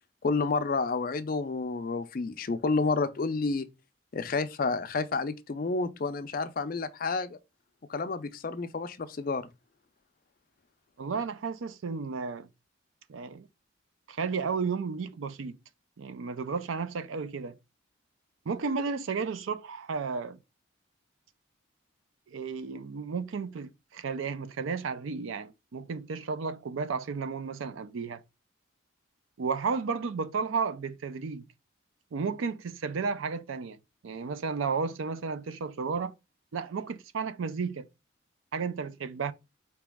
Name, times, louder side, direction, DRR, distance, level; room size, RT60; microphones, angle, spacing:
voice 1, 0.2-3.7 4.1-7.4 7.9-9.5, left 4 dB, 45° left, 0.4 m, -30 dB
voice 2, 11.0-12.5 13.1-13.5 14.1-15.6 16.0-17.6 18.5-20.4 22.3-28.2 29.4-31.5 32.1-33.8 34.0-36.1 36.5-37.9 38.5-39.3, right 5 dB, 85° right, 0.5 m, -33 dB
4.7 x 3.0 x 3.4 m
head